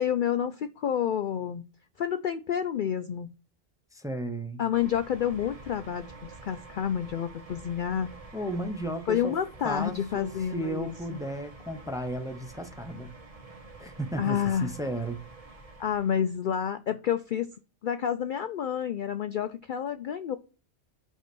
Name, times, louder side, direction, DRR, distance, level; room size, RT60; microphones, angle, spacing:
voice 1, 0.0-1.6 2.0-3.3 4.6-8.1 9.1-11.2 14.2-14.7 15.8-17.5 17.8-20.4, left 9 dB, 60° left, 0.5 m, -29 dB
voice 2, 3.9-4.6 8.3-9.3 9.6-13.1 13.8-15.2, right 1 dB, 5° right, 0.7 m, -34 dB
sound 1, 4.7-16.3, right 3 dB, 35° right, 1.1 m, -48 dB
5.6 x 4.3 x 6.1 m
omnidirectional pair, 1.2 m